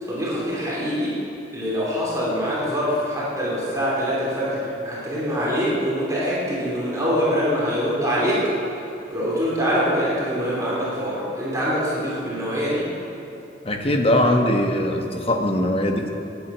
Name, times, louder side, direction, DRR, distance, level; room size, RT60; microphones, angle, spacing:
voice 1, 0.0-1.2 1.5-8.4 9.1-12.9, equal, 20° right, -7 dB, 3.2 m, -24 dB
voice 2, 13.6-16.1, left 1 dB, 35° left, 3 dB, 1.2 m, -21 dB
13.0 x 9.3 x 6.2 m, 3.0 s
head